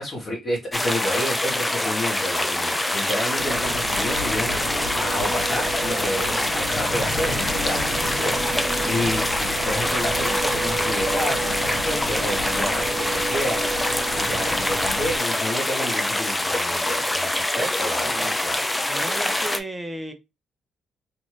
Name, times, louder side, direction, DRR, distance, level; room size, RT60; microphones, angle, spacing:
voice 1, 0.0-13.6 14.1-18.6, equal, 45° left, 1.2 m, -30 dB
sound 1, 0.7-19.6, left 1 dB, 15° left, 0.5 m, -25 dB
sound 2, 3.4-15.2, right 3 dB, 85° right, 1.0 m, -31 dB
voice 2, 8.7-9.2 14.3-14.6 18.0-20.1, right 1 dB, 15° right, 0.8 m, -36 dB
2.6 x 2.5 x 3.2 m
cardioid pair, 90°, 0 cm